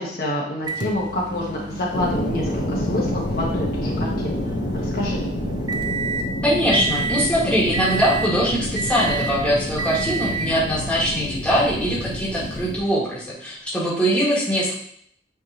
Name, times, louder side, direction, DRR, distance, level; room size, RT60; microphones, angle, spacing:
voice 1, 0.0-4.4 4.7-5.2, left 1 dB, 55° left, -3 dB, 1.2 m, -27 dB
Microwave oven, 0.7-6.3 6.7-7.3 7.7-8.4 8.8-9.4 9.8-10.6 11.6-11.7 13.7-13.8, right 4 dB, 25° right, 0.4 m, -30 dB
sound 1, 1.9-12.8, left 1 dB, 75° left, 1.0 m, -28 dB
voice 2, 6.4-14.7, equal, 5° left, -7 dB, 1.7 m, -22 dB
9.1 x 3.6 x 2.9 m, 0.66 s
head